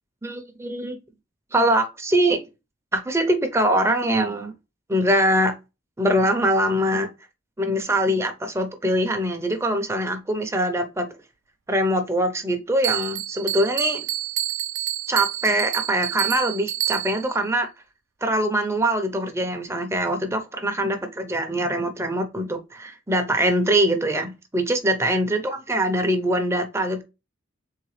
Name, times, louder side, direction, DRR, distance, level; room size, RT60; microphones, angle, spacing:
voice 1, 0.2-1.0 1.5-2.4 2.9-4.5 4.9-5.5 6.0-7.1 7.6-11.1 11.7-14.0 15.1-17.7 18.2-27.0, right 1 dB, 15° right, 0.8 m, -23 dB
Bell, 12.8-17.4, right 13 dB, 75° right, 0.5 m, -28 dB
3.7 x 3.7 x 3.2 m
head